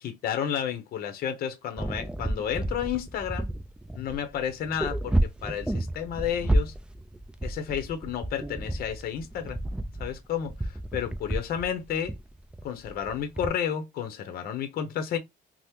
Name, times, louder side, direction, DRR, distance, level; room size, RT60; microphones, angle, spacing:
voice 1, 0.0-3.5 3.9-6.7 7.4-9.6 10.0-12.2 12.6-15.2, left 8 dB, 60° left, 0.7 m, -31 dB
sound 1, 1.8-13.5, right 1 dB, 5° right, 0.3 m, -31 dB
2.8 x 2.0 x 3.4 m
cardioid pair, 110°, 17 cm